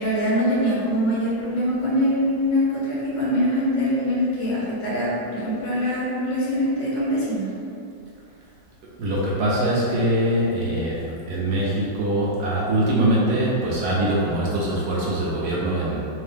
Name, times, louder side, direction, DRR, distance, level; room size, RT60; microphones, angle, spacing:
voice 1, 0.0-7.5, equal, 75° left, -7 dB, 1.6 m, -23 dB
voice 2, 9.0-16.1, right 1 dB, 70° right, -6 dB, 1.0 m, -23 dB
3.4 x 2.8 x 3.4 m, 2.5 s
omnidirectional pair, 2.0 m